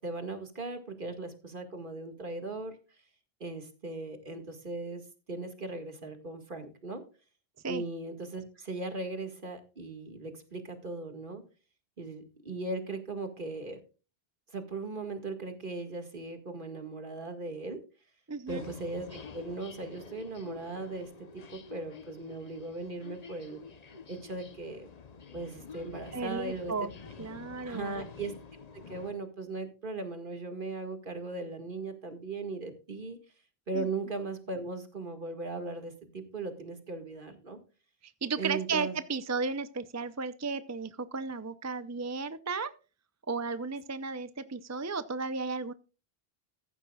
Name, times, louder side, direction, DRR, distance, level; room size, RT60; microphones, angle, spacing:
voice 1, 0.0-2.8 3.4-5.0 5.3-7.0 7.7-11.4 12.0-13.8 14.5-17.8 18.5-23.6 24.1-24.9 25.3-26.7 27.7-28.3 28.9-33.2 33.7-37.6 38.4-39.0, right 3 dB, 55° right, 7 dB, 2.1 m, -38 dB
voice 2, 18.3-18.6 26.1-26.9 27.2-28.0 33.7-33.9 38.0-42.7 43.3-45.7, right 4 dB, 20° right, 13 dB, 0.5 m, -34 dB
sound 1, 18.5-29.1, left 5 dB, 40° left, 0.9 m, -48 dB
15.0 x 11.0 x 2.3 m, 0.33 s
omnidirectional pair, 1.0 m